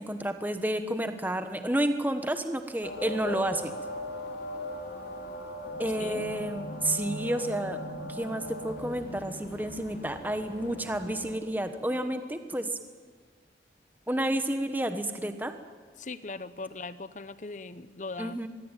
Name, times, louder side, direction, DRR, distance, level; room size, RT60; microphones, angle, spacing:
voice 1, 0.0-3.7 5.8-7.8 8.1-12.8 14.1-15.5 18.2-18.5, right 1 dB, 10° right, 8 dB, 1.2 m, -30 dB
sound 1, 2.8-11.3, left 1 dB, 75° left, 4.6 m, -39 dB
voice 2, 16.0-18.4, left 3 dB, 45° left, 14 dB, 0.9 m, -39 dB
25.0 x 22.0 x 9.1 m, 1.5 s
head